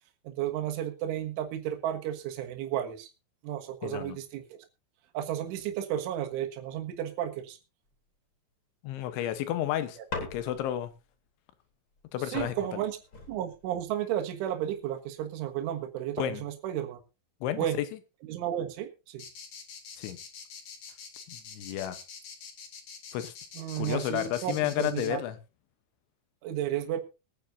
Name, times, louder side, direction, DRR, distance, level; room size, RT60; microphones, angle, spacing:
voice 1, 0.3-3.1 3.4-4.5 5.1-7.6 10.0-10.1 12.2-13.0 13.3-17.0 17.6-17.8 18.2-19.3 23.6-25.2 26.4-27.0, right 11 dB, 85° right, 3.9 m, -33 dB
voice 2, 3.8-4.2 8.8-10.0 10.3-10.9 12.1-12.6 16.2-16.4 17.4-17.6 20.0-20.2 21.3-22.0 23.1-23.3 23.8-25.4, left 12 dB, 80° left, 3.4 m, -31 dB
sound 1, 10.1-10.8 12.0-12.1 12.3-13.8 14.6-15.0, left 3 dB, 25° left, 3.4 m, -40 dB
sound 2, 19.2-25.1, left 6 dB, 55° left, 3.3 m, -45 dB
22.5 x 9.5 x 2.7 m
omnidirectional pair, 5.5 m